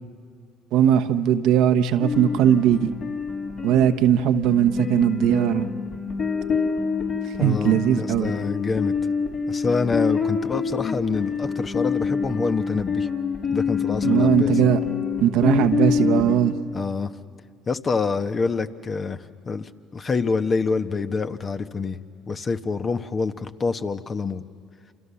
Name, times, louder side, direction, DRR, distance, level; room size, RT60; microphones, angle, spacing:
voice 1, 0.7-2.9 3.6-5.7 7.4-8.3 14.0-14.8 15.2-16.5, right 10 dB, 70° right, 9 dB, 1.1 m, -19 dB
sound 1, 2.0-16.4, left 6 dB, 55° left, 3.8 m, -26 dB
voice 2, 7.4-8.9 9.5-13.1 13.5-14.6 16.7-17.1 17.7-22.0 22.3-24.4, left 4 dB, 35° left, 9 dB, 1.2 m, -26 dB
28.5 x 27.5 x 7.1 m, 2.3 s
hypercardioid pair, 65°, 0 cm